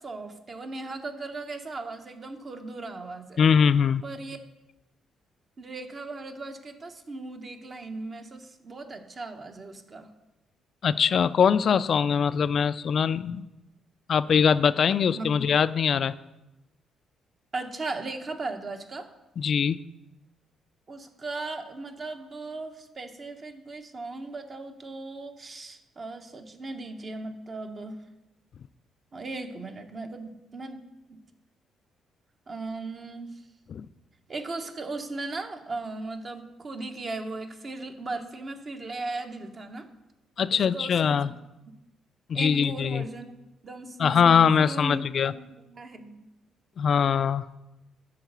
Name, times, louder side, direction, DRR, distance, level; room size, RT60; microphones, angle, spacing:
voice 1, 0.0-3.4 4.0-4.4 5.6-10.1 15.1-15.4 17.5-19.1 20.9-28.0 29.1-30.8 31.1-31.2 32.5-33.3 34.3-39.9 40.5-41.3 42.3-43.3 43.6-44.3 44.6-46.3, right 3 dB, 40° right, 5 dB, 1.0 m, -37 dB
voice 2, 3.4-4.0 10.8-13.5 14.1-16.1 19.4-19.8 33.7-33.9 40.4-41.3 42.3-43.1 44.0-45.3 46.8-47.4, left 7 dB, 55° left, 15 dB, 0.3 m, -22 dB
10.5 x 4.0 x 6.8 m, 0.97 s
cardioid pair, 90°, 0 cm